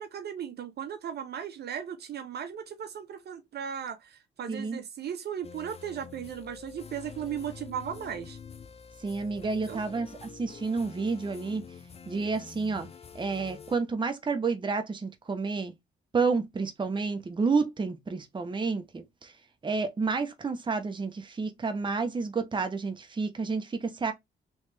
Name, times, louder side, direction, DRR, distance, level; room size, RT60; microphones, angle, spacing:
voice 1, 0.0-8.4 9.5-9.8, right 8 dB, 55° right, 0.7 m, -37 dB
voice 2, 4.5-4.8 9.0-11.6 12.1-12.9 13.1-15.7 16.1-19.3 19.6-24.1, right 4 dB, 25° right, 0.8 m, -30 dB
sound 1, 5.4-13.8, left 6 dB, 30° left, 0.5 m, -47 dB
3.2 x 3.1 x 3.2 m
cardioid pair, 90°, 20 cm